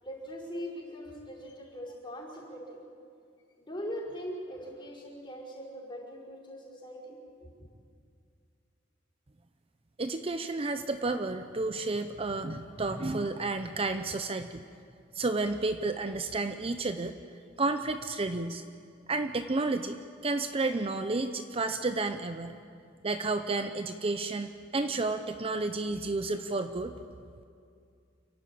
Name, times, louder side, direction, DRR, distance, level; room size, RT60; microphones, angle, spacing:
voice 1, 0.0-2.8 3.6-7.5, equal, 25° left, -4 dB, 5.3 m, -41 dB
voice 2, 10.0-14.6 15.1-17.2 17.6-18.6 19.1-22.6 23.0-26.9, right 3 dB, 30° right, 8 dB, 0.6 m, -31 dB
29.5 x 11.5 x 8.7 m, 2.4 s
head